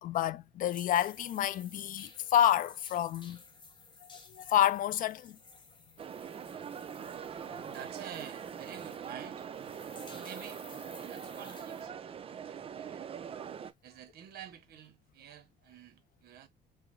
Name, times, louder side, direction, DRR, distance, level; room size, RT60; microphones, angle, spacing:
voice 1, 0.0-3.4 4.3-5.4, left 11 dB, 55° left, 0.4 m, -29 dB
sound 1, 0.6-11.9, left 4 dB, 25° left, 0.9 m, -55 dB
sound 2, 6.0-13.7, right 8 dB, 35° right, 0.5 m, -42 dB
voice 2, 7.6-9.5 10.1-10.6 11.1-13.0 13.8-16.5, right 9 dB, 65° right, 0.9 m, -49 dB
4.7 x 2.1 x 3.1 m
cardioid pair, 110°, 17 cm